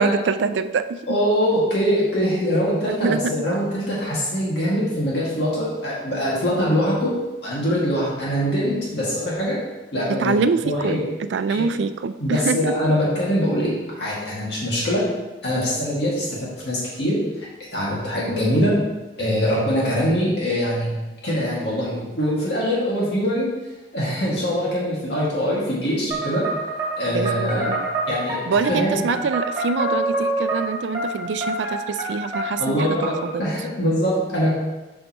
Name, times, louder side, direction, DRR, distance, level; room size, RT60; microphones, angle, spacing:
voice 1, 0.0-1.0 2.8-3.3 10.1-12.9 27.1-27.9 28.5-33.4, right 5 dB, 85° right, 12 dB, 0.4 m, -25 dB
voice 2, 1.1-9.6 9.9-10.4 10.6-11.0 11.5-11.7 12.2-15.1 15.4-18.7 19.2-20.9 21.2-23.5 23.9-26.5 27.0-27.7 28.1-28.4 28.7-29.1 32.6-34.5, equal, 70° left, -6 dB, 2.1 m, -23 dB
sound 1, 26.1-33.3, right 2 dB, 30° right, 1.9 m, -27 dB
7.6 x 5.5 x 3.0 m, 1.1 s
head